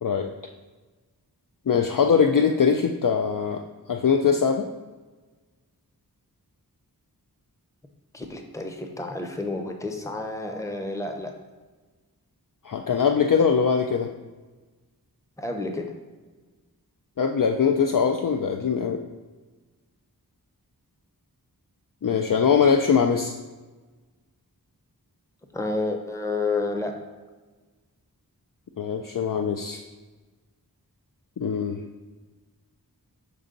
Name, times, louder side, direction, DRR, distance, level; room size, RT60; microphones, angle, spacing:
voice 1, 0.0-0.3 1.7-3.6 3.9-4.7 12.7-14.1 17.2-19.0 22.0-23.3 28.8-29.8 31.4-31.8, left 6 dB, 55° left, 4 dB, 0.5 m, -22 dB
voice 2, 8.1-11.3 15.4-15.9 25.5-26.9, left 3 dB, 10° left, 4 dB, 0.7 m, -30 dB
6.7 x 4.4 x 3.8 m, 1.3 s
wide cardioid pair, 45°, 38 cm